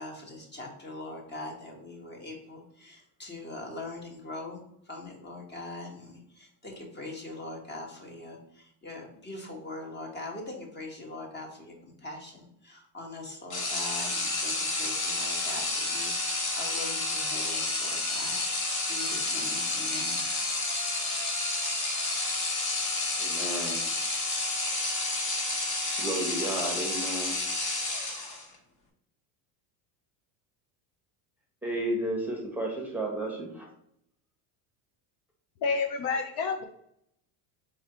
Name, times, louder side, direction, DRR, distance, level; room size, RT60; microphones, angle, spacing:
voice 1, 0.0-4.6 4.9-20.7, left 2 dB, 20° left, 1 dB, 1.3 m, -42 dB
sound 1, 13.5-28.5, left 2 dB, 40° left, 1.3 m, -30 dB
voice 2, 23.2-23.8 26.0-27.4 31.6-33.7, right 1 dB, 5° right, 0 dB, 1.0 m, -32 dB
voice 3, 35.6-36.6, left 4 dB, 60° left, 5 dB, 0.6 m, -29 dB
3.8 x 3.2 x 4.2 m, 0.73 s
supercardioid pair, 120°, 47 cm